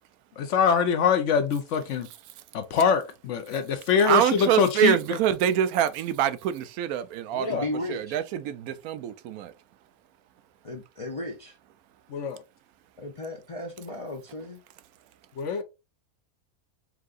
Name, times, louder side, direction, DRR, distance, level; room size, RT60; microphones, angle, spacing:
voice 1, 0.4-2.1 2.5-5.0 7.3-7.7 12.1-12.4 15.4-15.6, left 6 dB, 65° left, 0.9 m, -24 dB
voice 2, 4.0-9.5, right 9 dB, 90° right, 1.1 m, -25 dB
voice 3, 7.4-8.2 10.6-11.6 13.0-14.6, left 2 dB, 45° left, 0.4 m, -35 dB
4.6 x 3.7 x 2.4 m
omnidirectional pair, 1.5 m